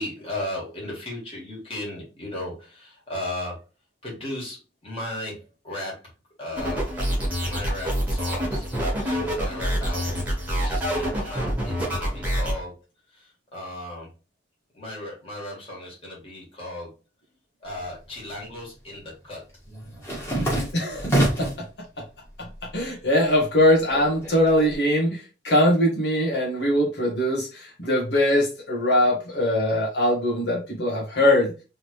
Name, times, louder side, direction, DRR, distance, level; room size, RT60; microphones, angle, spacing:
voice 1, 0.0-3.6 4.0-6.1 6.4-7.0 7.4-8.7 8.9-12.7 13.1-14.1 14.7-16.9 17.6-19.4, left 1 dB, 30° left, -3 dB, 2.1 m, -36 dB
sound 1, 6.6-12.5, equal, 10° right, 1.4 m, -26 dB
sound 2, 17.9-18.6 18.9-21.7 22.1-22.8 23.1-24.7, right 1 dB, 15° left, 1.7 m, -27 dB
voice 2, 20.4-21.6 22.0-22.1 22.4-22.5 22.7-31.5, left 1 dB, 70° left, -2 dB, 1.3 m, -22 dB
3.7 x 3.3 x 3.1 m, 0.32 s
head